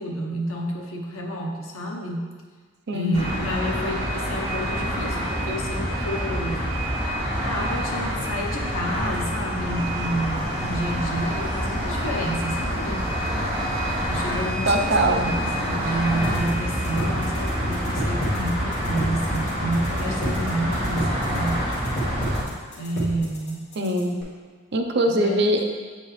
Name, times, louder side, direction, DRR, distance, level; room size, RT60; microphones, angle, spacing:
voice 1, 0.0-2.3 2.9-6.7 7.4-13.1 14.1-21.7 22.7-23.7 25.1-25.6, right 1 dB, 90° left, -1 dB, 1.0 m, -29 dB
voice 2, 2.9-3.5 14.7-15.3 23.8-24.2 24.7-25.6, right 1 dB, 55° right, 3 dB, 0.6 m, -22 dB
sound 1, 3.1-22.4, equal, 25° right, 1.8 m, -27 dB
sound 2, 16.2-24.2, equal, 55° left, 1.6 m, -31 dB
7.9 x 4.3 x 3.2 m, 1.5 s
head